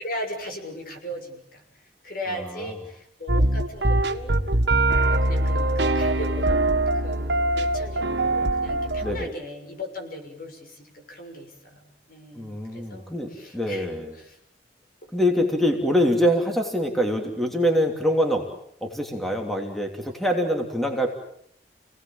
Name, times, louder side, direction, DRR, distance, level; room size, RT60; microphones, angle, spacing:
voice 1, 0.0-1.6 2.0-4.3 4.7-14.4, equal, 55° left, 4 dB, 6.5 m, -38 dB
voice 2, 2.3-2.8 9.0-9.3 12.3-14.1 15.1-18.4 18.8-21.1, equal, ahead, 3 dB, 3.0 m, -24 dB
sound 1, 3.3-9.2, right 2 dB, 75° right, 1.8 m, -22 dB
28.5 x 18.5 x 8.8 m, 0.70 s
head